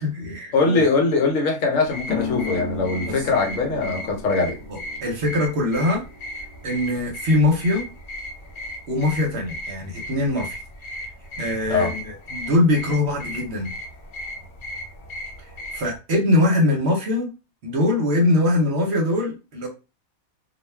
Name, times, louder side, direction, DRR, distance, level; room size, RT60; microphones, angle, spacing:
voice 1, 0.0-0.8 3.1-3.3 4.7-6.0 6.6-7.9 8.9-10.6 11.4-13.7 15.7-17.3 17.6-19.7, left 2 dB, 55° right, 1 dB, 0.9 m, -22 dB
voice 2, 0.5-4.6 11.7-11.9, left 3 dB, 70° left, 2 dB, 1.1 m, -21 dB
sound 1, 1.8-16.0, left 1 dB, 45° left, 0.7 m, -36 dB
sound 2, 2.1-9.2, left 5 dB, 5° left, 1.0 m, -37 dB
2.4 x 2.2 x 3.2 m, 0.29 s
omnidirectional pair, 1.5 m